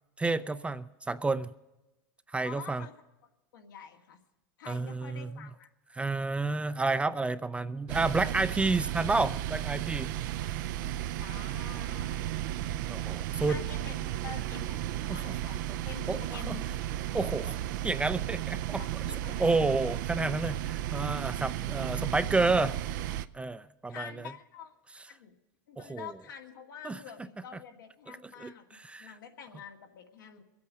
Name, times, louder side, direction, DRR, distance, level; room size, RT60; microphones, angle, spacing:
voice 1, 0.2-1.5 2.3-2.8 4.7-5.5 5.9-10.2 12.9-13.6 15.1-15.4 16.1-16.2 16.5-16.6 17.1-17.6 17.8-18.8 19.4-22.8 23.3-24.3 25.8-26.1 26.8-27.0 28.1-29.1, right 3 dB, 10° right, 13 dB, 0.4 m, -30 dB
voice 2, 2.4-2.9 3.5-4.2 4.6-5.7 11.2-12.4 13.5-16.7 18.4-19.4 23.9-24.8 25.1-25.4 25.7-28.7 29.0-30.4, left 7 dB, 85° left, 1 dB, 2.0 m, -47 dB
sound 1, 7.9-23.3, right 12 dB, 70° right, 0.5 m, -34 dB
23.0 x 8.5 x 5.1 m, 1.0 s
hypercardioid pair, 110°, 11 cm